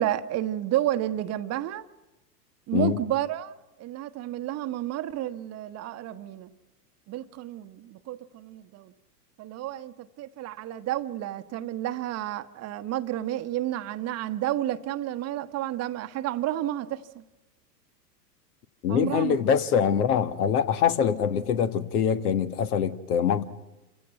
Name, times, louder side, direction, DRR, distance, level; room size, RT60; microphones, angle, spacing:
voice 1, 0.0-1.8 2.7-3.5 3.8-6.5 7.1-8.9 9.4-17.2 18.9-19.3, right 13 dB, 30° right, 1.0 m, -31 dB
voice 2, 18.8-23.4, left 8 dB, 65° left, 1.6 m, -24 dB
28.0 x 16.0 x 9.2 m
hypercardioid pair, 105°, 49 cm